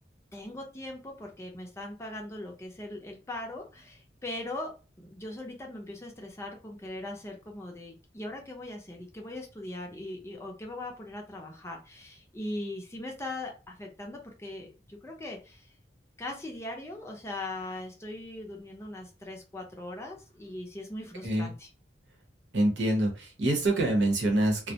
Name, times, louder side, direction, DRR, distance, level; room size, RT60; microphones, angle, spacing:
voice 1, 0.3-15.7 16.2-21.7, left 1 dB, 15° left, 1 dB, 0.5 m, -40 dB
voice 2, 22.5-24.7, right 1 dB, 75° right, 1 dB, 0.8 m, -26 dB
2.3 x 2.0 x 2.8 m, 0.32 s
head